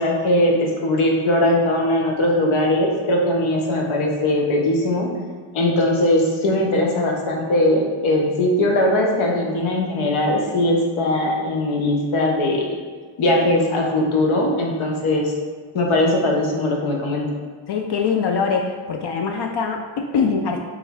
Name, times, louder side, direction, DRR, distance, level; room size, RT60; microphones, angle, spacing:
voice 1, 0.0-5.1 5.5-12.7 13.2-15.3 15.7-17.3, left 1 dB, 80° left, 0 dB, 0.9 m, -20 dB
voice 2, 17.7-20.6, left 5 dB, 55° left, 3 dB, 0.5 m, -23 dB
3.5 x 3.1 x 3.5 m, 1.5 s
cardioid pair, 80°, 48 cm